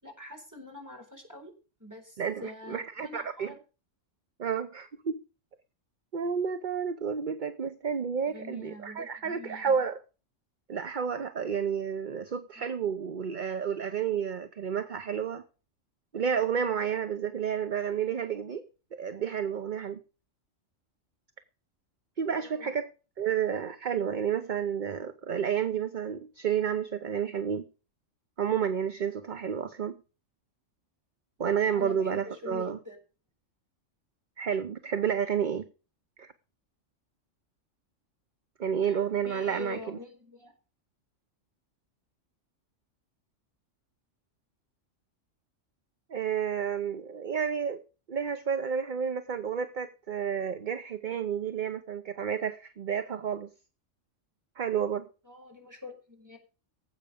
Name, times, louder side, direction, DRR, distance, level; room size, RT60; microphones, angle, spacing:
voice 1, 0.0-1.5 1.8-3.6 8.3-9.8 12.6-12.7 22.2-22.7 31.8-33.0 38.8-40.5 55.2-56.4, left 2 dB, 15° right, 4.3 m, -45 dB
voice 2, 2.2-3.5 4.4-5.2 6.1-10.0 10.7-15.4 16.1-18.6 18.9-20.0 22.2-22.9 23.2-27.6 28.4-29.9 31.4-32.8 34.4-35.7 36.2-36.3 38.6-40.0 46.1-47.8 48.1-53.5 54.6-55.0, right 7 dB, 45° right, 0.8 m, -30 dB
17.5 x 8.2 x 5.1 m
omnidirectional pair, 1.3 m